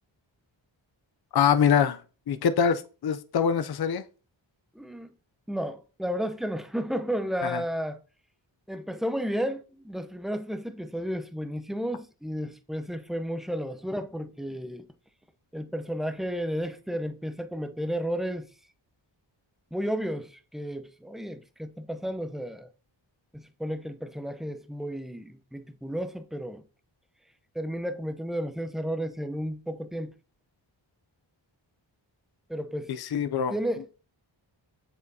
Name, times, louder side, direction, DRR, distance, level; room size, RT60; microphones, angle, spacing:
voice 1, 1.3-2.0 2.3-4.0 7.4-7.6 32.9-33.5, left 7 dB, 55° left, 0.5 m, -24 dB
voice 2, 4.8-5.1 5.5-8.0 8.7-14.8 15.5-18.5 19.7-22.7 23.3-26.6 27.5-30.1 32.5-32.9 33.5-34.0, equal, ahead, 0.7 m, -32 dB
7.3 x 6.7 x 2.7 m
wide cardioid pair, 70°, 47 cm